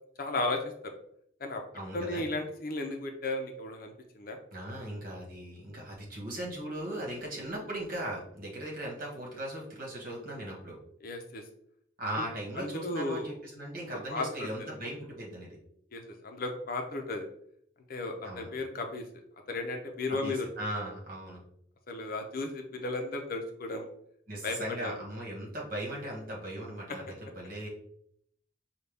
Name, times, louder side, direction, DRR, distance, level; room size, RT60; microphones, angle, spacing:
voice 1, 0.2-0.9 1.4-1.6 1.9-4.4 11.0-11.4 12.1-12.2 12.6-13.4 14.1-14.7 15.9-17.3 17.9-19.2 19.5-20.5 21.9-23.9 24.4-25.0, left 2 dB, 50° left, 4 dB, 0.6 m, -35 dB
voice 2, 1.7-2.3 4.5-10.8 12.0-15.6 18.2-18.5 20.2-21.4 24.3-27.0 27.3-27.7, right 1 dB, 50° right, -2 dB, 1.5 m, -38 dB
5.4 x 2.3 x 3.4 m, 0.69 s
head